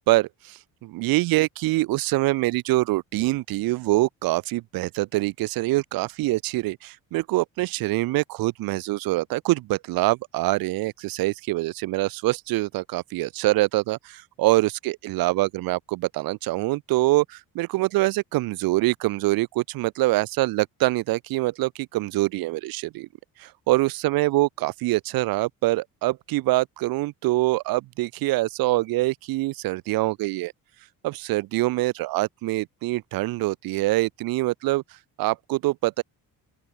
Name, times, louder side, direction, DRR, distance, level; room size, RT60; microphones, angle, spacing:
voice 1, 0.1-23.1 23.4-30.5 31.0-34.8 35.2-36.0, right 19 dB, 75° right, 0.7 m, -24 dB
open air
cardioid pair, 160°, 36 cm